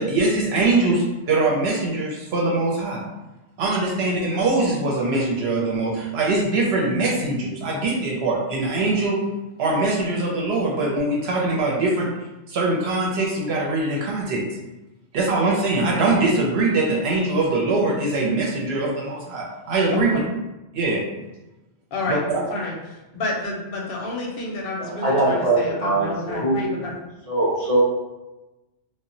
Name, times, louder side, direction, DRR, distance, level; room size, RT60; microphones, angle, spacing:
voice 1, 0.0-3.0 3.6-9.2 9.6-12.1 12.5-14.4 15.1-20.2 20.7-21.0, right 2 dB, 80° right, -3 dB, 0.8 m, -22 dB
voice 2, 19.9-20.2 21.9-26.9, left 2 dB, 65° left, -1 dB, 0.7 m, -29 dB
voice 3, 24.8-26.6 27.3-27.8, right 2 dB, 40° right, -6 dB, 0.7 m, -21 dB
2.1 x 2.0 x 3.7 m, 1.0 s
omnidirectional pair, 1.1 m